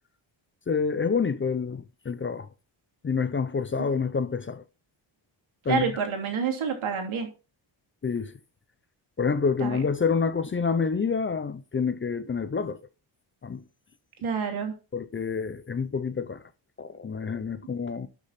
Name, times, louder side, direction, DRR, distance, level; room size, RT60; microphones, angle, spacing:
voice 1, 0.7-2.5 3.0-4.6 5.6-5.9 8.0-8.3 9.2-12.8 13.4-13.6 14.9-16.4 16.8-18.1, left 5 dB, 25° left, 0.5 m, -28 dB
voice 2, 5.7-7.3 9.6-9.8 14.2-14.8, right 6 dB, 90° right, 3.0 m, -28 dB
11.5 x 6.4 x 4.2 m
wide cardioid pair, 170°, 47 cm